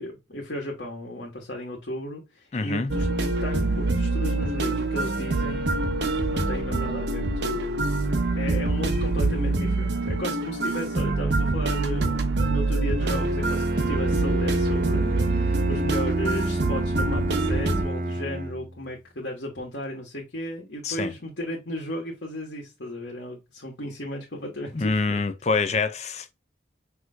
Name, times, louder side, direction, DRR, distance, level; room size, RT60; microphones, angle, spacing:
voice 1, 0.0-25.2, left 1 dB, 75° left, 1.5 m, -35 dB
voice 2, 2.5-2.9 20.8-21.1 24.7-26.3, left 4 dB, 35° left, 0.5 m, -26 dB
sound 1, 2.9-17.8, right 2 dB, 75° right, 0.8 m, -25 dB
Bowed string instrument, 13.0-18.9, right 1 dB, 50° right, 0.6 m, -29 dB
6.0 x 3.2 x 2.4 m
head